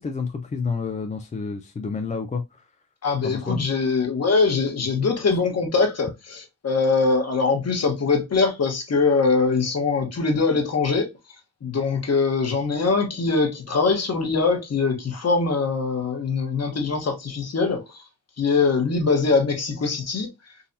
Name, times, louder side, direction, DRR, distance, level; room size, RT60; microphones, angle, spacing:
voice 1, 0.0-2.6 3.2-3.6, left 5 dB, 20° left, 0.4 m, -29 dB
voice 2, 3.0-11.1 11.6-18.0 18.4-20.3, left 4 dB, 45° left, 1.3 m, -22 dB
3.9 x 2.6 x 2.7 m
cardioid pair, 95°, 37 cm